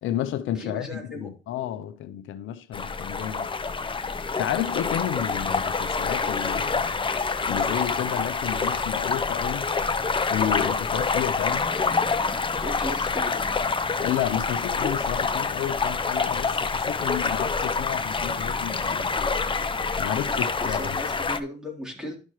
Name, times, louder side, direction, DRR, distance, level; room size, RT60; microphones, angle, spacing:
voice 1, 0.0-3.5 4.4-6.9 7.4-9.7 10.3-11.7 14.0-19.1 20.0-21.0, left 11 dB, 80° left, 0.7 m, -31 dB
voice 2, 0.6-1.3 12.6-13.5 20.3-22.2, left 1 dB, 5° right, 3.4 m, -36 dB
sound 1, 2.7-21.4, left 4 dB, 25° left, 0.8 m, -27 dB
11.5 x 6.1 x 3.1 m
cardioid pair, 90°, 20 cm